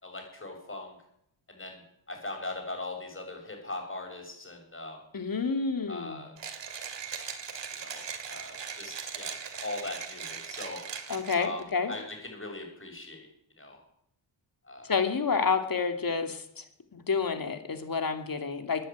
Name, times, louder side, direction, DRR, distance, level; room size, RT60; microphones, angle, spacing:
voice 1, 0.0-0.9 1.5-1.8 2.1-5.0 5.9-6.3 7.8-10.8 11.3-11.6 11.9-13.3 13.6-13.8 14.7-14.9, left 2 dB, 25° left, 2 dB, 7.2 m, -40 dB
voice 2, 5.1-6.2 11.1-12.0 14.9-16.6 16.9-18.9, left 5 dB, 45° left, 6 dB, 2.7 m, -29 dB
Mechanisms, 6.4-11.6, right 6 dB, 65° right, 2.6 m, -39 dB
15.0 x 10.0 x 9.6 m, 0.72 s
cardioid pair, 80°, 47 cm